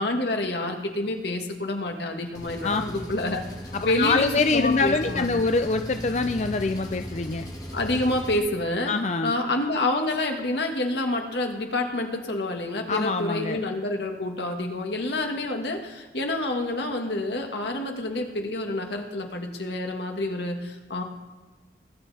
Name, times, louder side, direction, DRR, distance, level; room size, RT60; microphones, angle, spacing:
voice 1, 0.0-3.4 3.8-5.3 7.7-8.9 9.2-21.0, left 2 dB, 75° left, 3 dB, 1.8 m, -28 dB
Engine, 2.3-8.4, equal, 20° left, 1.9 m, -37 dB
voice 2, 3.7-7.5 8.9-9.3 12.9-13.7, left 3 dB, 40° left, 7 dB, 0.5 m, -25 dB
21.0 x 9.4 x 4.2 m, 1.3 s
head